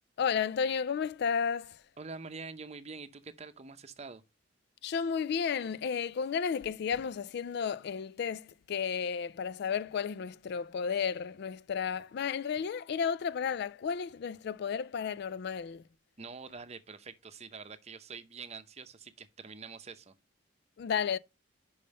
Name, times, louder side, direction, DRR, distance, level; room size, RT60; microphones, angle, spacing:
voice 1, 0.2-1.8 4.8-15.8 20.8-21.2, left 6 dB, 60° left, 0.3 m, -33 dB
voice 2, 2.0-4.2 16.2-20.1, right 4 dB, 35° right, 0.7 m, -46 dB
5.5 x 5.2 x 5.3 m
head